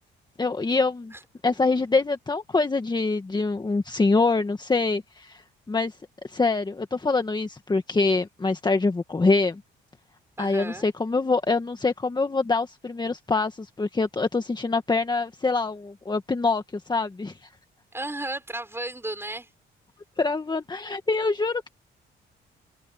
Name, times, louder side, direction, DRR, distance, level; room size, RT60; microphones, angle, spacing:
voice 1, 0.4-1.1 1.4-5.9 6.2-9.6 10.4-17.5 20.2-21.7, left 3 dB, 20° left, 1.7 m, -25 dB
voice 2, 10.4-10.9 17.9-19.5, right 2 dB, 10° right, 6.1 m, -34 dB
cardioid pair, 90°, 20 cm